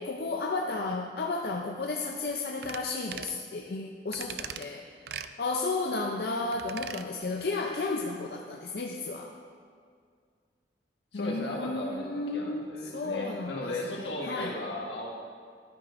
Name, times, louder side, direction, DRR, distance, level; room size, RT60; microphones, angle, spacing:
voice 1, 0.0-4.8 5.4-9.3 11.1-13.6 14.0-14.5, left 3 dB, 55° left, 1 dB, 0.5 m, -33 dB
sound 1, 2.6-2.8 3.1-3.4 4.1-4.7 5.1-5.3 6.5-7.1 7.4-7.5, right 8 dB, 60° right, 0.3 m, -40 dB
voice 2, 11.1-15.1, left 1 dB, 80° left, -2 dB, 1.6 m, -36 dB
12.5 x 9.6 x 2.5 m, 2.1 s
head